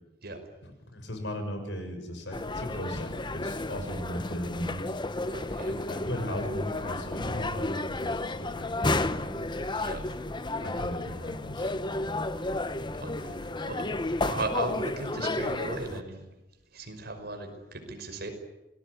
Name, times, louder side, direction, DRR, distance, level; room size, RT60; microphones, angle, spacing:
voice 1, 0.6-4.9 5.7-10.1 10.6-11.9, equal, 70° left, 6 dB, 6.4 m, -38 dB
sound 1, 2.3-16.0, left 2 dB, 25° left, 1.0 m, -32 dB
voice 2, 5.3-5.8 9.8-10.0 12.9-13.4 13.6-16.2 16.7-18.3, right 2 dB, 60° right, 6 dB, 5.4 m, -36 dB
27.5 x 19.5 x 9.8 m, 0.99 s
head